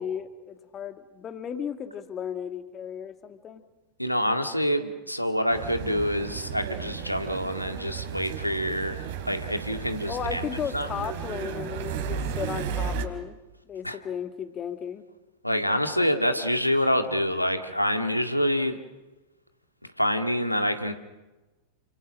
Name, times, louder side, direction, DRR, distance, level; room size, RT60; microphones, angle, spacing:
voice 1, 0.0-3.6 10.1-13.4 13.7-15.0, left 8 dB, 25° left, 8 dB, 2.1 m, -35 dB
voice 2, 4.0-10.5 10.7-11.0 13.8-14.0 15.4-18.8 20.0-20.9, equal, 90° left, 6 dB, 2.1 m, -26 dB
sound 1, 5.5-13.1, right 7 dB, 55° right, 3.5 m, -34 dB
29.5 x 27.0 x 6.4 m, 1.1 s
figure-of-eight pair, 90°, 0 cm